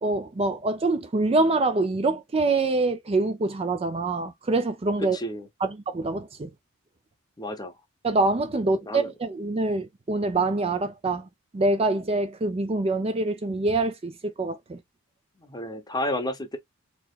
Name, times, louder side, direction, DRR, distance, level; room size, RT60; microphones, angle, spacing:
voice 1, 0.0-5.2 5.6-6.5 8.0-11.3 11.5-14.8, right 2 dB, 25° right, 0.5 m, -25 dB
voice 2, 5.0-5.5 7.4-7.7 8.6-9.1 15.4-16.6, left 1 dB, 20° left, 0.8 m, -31 dB
4.3 x 2.9 x 2.3 m
head